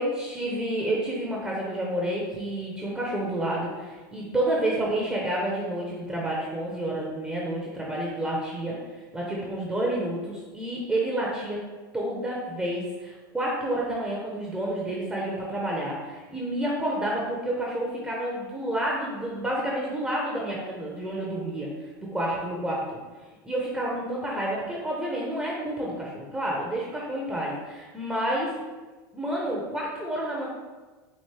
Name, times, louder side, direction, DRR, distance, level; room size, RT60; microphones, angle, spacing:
voice 1, 0.0-11.6 11.9-21.7 22.1-23.0 23.4-28.6 29.1-30.5, right 1 dB, 5° right, -4 dB, 0.7 m, -29 dB
4.3 x 2.8 x 3.2 m, 1.3 s
hypercardioid pair, 110°, 11 cm